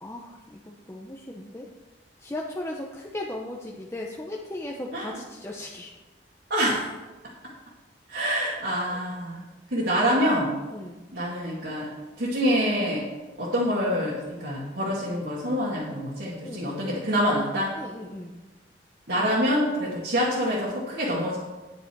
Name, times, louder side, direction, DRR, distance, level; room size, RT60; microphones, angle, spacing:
voice 1, 0.0-1.7 2.2-5.9 8.7-9.0 10.7-11.0 16.4-17.1 17.7-18.3, left 1 dB, 15° left, -2 dB, 0.8 m, -37 dB
voice 2, 6.5-6.9 8.1-9.4 9.7-10.5 11.1-11.9 12.2-13.0 13.4-17.7 19.1-21.4, equal, 75° right, -8 dB, 2.6 m, -26 dB
10.0 x 9.9 x 4.7 m, 1.2 s
head